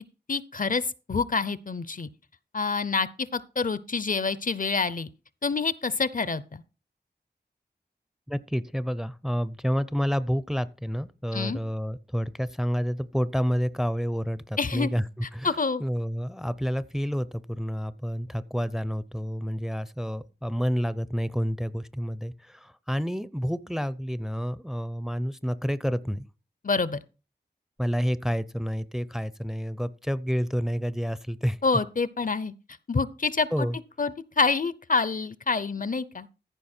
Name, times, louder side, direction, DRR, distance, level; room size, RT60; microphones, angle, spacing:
voice 1, 0.3-2.1 2.5-5.1 5.4-6.6 11.3-11.6 14.6-14.9 15.4-15.8 26.6-27.0 31.6-32.5 32.9-33.7 34.0-36.3, left 4 dB, 50° left, 0.6 m, -27 dB
voice 2, 8.3-15.5 15.8-26.3 27.8-31.6 33.5-33.8, equal, ahead, 0.6 m, -29 dB
14.5 x 5.2 x 4.4 m
wide cardioid pair, 60°, 17 cm